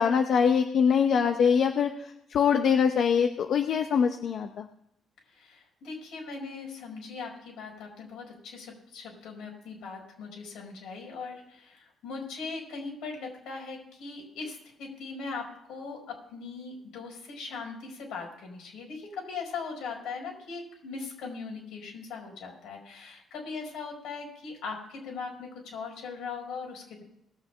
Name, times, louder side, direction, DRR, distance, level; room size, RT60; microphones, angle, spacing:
voice 1, 0.0-4.7, left 7 dB, 65° left, 6 dB, 0.9 m, -24 dB
voice 2, 5.3-27.0, left 4 dB, 90° left, 0 dB, 5.1 m, -40 dB
20.0 x 6.9 x 5.6 m, 0.79 s
cardioid pair, 90°, 0 cm